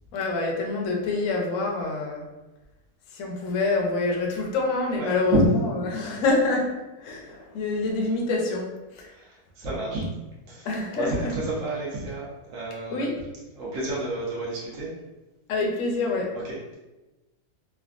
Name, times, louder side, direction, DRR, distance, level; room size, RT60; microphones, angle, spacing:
voice 1, 0.1-2.2 3.1-6.7 7.0-9.1 10.6-11.4 12.9-13.2 15.5-16.3, left 3 dB, 65° left, 0 dB, 0.8 m, -26 dB
voice 2, 5.0-5.4 9.6-10.1 10.5-10.7 11.0-13.1 13.5-14.9, right 3 dB, 60° right, -6 dB, 0.9 m, -30 dB
3.3 x 2.1 x 2.4 m, 1.1 s
omnidirectional pair, 1.8 m